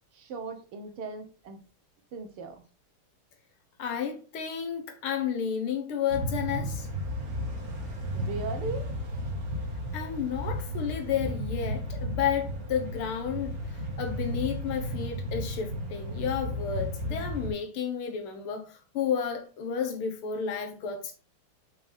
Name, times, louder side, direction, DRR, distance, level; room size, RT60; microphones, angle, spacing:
voice 1, 0.1-1.7 2.1-2.6 8.1-9.0, right 4 dB, 85° right, 2.2 m, -38 dB
voice 2, 3.8-6.9 9.9-21.1, left 7 dB, 75° left, 2.1 m, -32 dB
sound 1, 6.1-17.5, equal, 45° right, 1.8 m, -34 dB
6.0 x 5.7 x 3.5 m
omnidirectional pair, 2.4 m